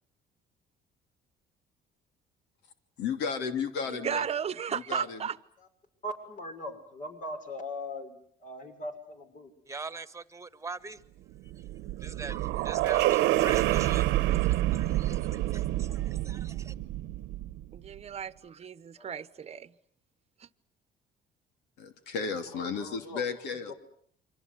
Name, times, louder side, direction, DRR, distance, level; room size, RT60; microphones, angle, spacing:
voice 1, 3.0-4.3 4.7-5.2 21.8-23.7, left 5 dB, 85° left, 3.0 m, -33 dB
voice 2, 3.9-5.4 17.7-19.7 20.4-20.5, right 8 dB, 40° right, 1.1 m, -34 dB
voice 3, 6.0-9.5 19.0-19.6 22.5-23.7, left 1 dB, 50° left, 6.5 m, -41 dB
voice 4, 9.7-11.0 11.6-11.7 12.0-16.7, right 4 dB, 15° right, 1.6 m, -42 dB
sound 1, 11.3-17.8, right 16 dB, 85° right, 1.1 m, -28 dB
28.5 x 25.0 x 8.2 m
cardioid pair, 110°, 17 cm